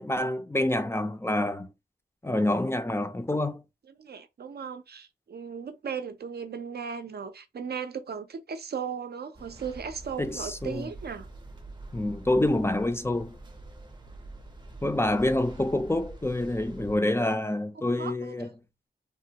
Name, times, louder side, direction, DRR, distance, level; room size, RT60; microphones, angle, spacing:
voice 1, 0.0-1.7 2.2-3.6 10.2-10.9 11.9-13.4 14.8-18.5, left 1 dB, 15° left, 0.3 m, -27 dB
voice 2, 4.0-11.3 18.0-18.5, right 6 dB, 65° right, 0.5 m, -37 dB
sound 1, 9.3-17.0, right 2 dB, 25° right, 0.6 m, -45 dB
3.1 x 2.2 x 2.8 m
wide cardioid pair, 95°, 18 cm